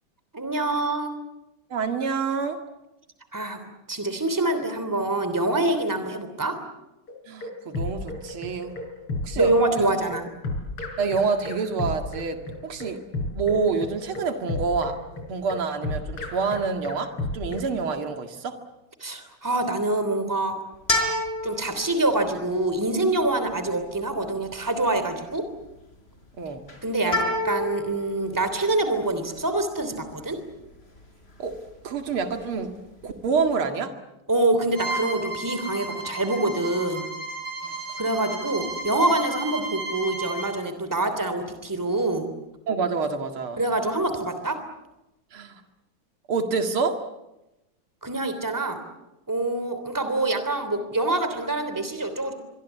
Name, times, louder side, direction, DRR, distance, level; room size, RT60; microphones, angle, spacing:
voice 1, 0.3-1.1 3.3-3.6 3.9-6.6 9.3-10.2 19.0-20.6 21.4-25.4 26.8-30.4 34.3-37.1 38.0-42.3 43.6-44.6 48.0-48.8 49.3-52.3, right 2 dB, 10° right, 9 dB, 3.1 m, -25 dB
voice 2, 1.7-2.6 7.3-8.8 9.2-9.9 11.0-13.0 13.3-15.0 15.3-18.6 26.4-26.6 31.4-31.6 31.8-32.7 33.0-33.9 37.6-38.0 42.7-43.6 45.3-45.6 46.3-47.0, right 5 dB, 75° right, 6 dB, 2.9 m, -27 dB
sound 1, 7.1-17.7, left 2 dB, 80° left, 6.1 m, -32 dB
sound 2, 20.7-33.6, left 1 dB, 25° left, 4.9 m, -32 dB
Bowed string instrument, 34.7-40.5, right 2 dB, 40° right, 8.3 m, -33 dB
25.5 x 23.5 x 8.3 m, 0.94 s
omnidirectional pair, 2.4 m